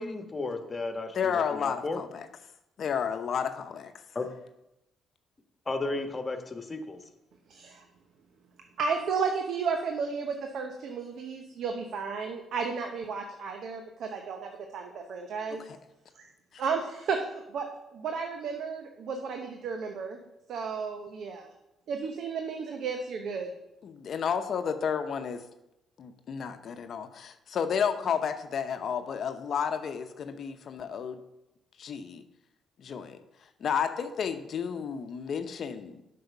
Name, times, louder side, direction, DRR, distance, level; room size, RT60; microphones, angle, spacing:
voice 1, 0.0-2.0 4.1-4.3 5.7-7.0, left 3 dB, 30° left, 6 dB, 1.3 m, -34 dB
voice 2, 1.1-2.3 2.8-3.9 15.7-15.8 16.5-16.6 23.8-25.4 26.0-31.2 31.8-32.2 32.8-33.2 33.6-36.0, left 7 dB, 60° left, 8 dB, 0.8 m, -31 dB
voice 3, 7.5-7.8 8.8-15.7 16.2-16.3 16.6-17.7 17.9-20.2 20.5-21.5 21.9-23.5, right 5 dB, 70° right, 4 dB, 0.8 m, -33 dB
7.8 x 5.6 x 5.5 m, 0.90 s
supercardioid pair, 55°, 0 cm